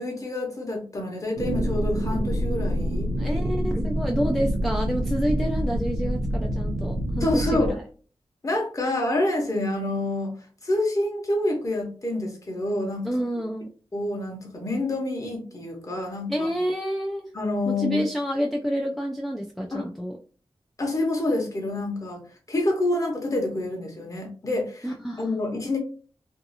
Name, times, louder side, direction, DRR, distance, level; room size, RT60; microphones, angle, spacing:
voice 1, 0.0-3.1 7.2-7.8 8.4-10.4 10.6-13.1 13.9-16.5 17.3-18.0 19.7-19.8 20.8-22.2 22.5-24.9 25.2-25.8, left 2 dB, 35° left, 1 dB, 1.0 m, -27 dB
sound 1, 1.4-7.7, equal, 85° right, 0.6 m, -26 dB
voice 2, 3.2-7.8 13.0-13.7 16.3-17.3 17.7-20.2 24.8-25.3, equal, ahead, 0 dB, 0.3 m, -28 dB
2.7 x 2.4 x 2.7 m, 0.39 s
wide cardioid pair, 105°, 10 cm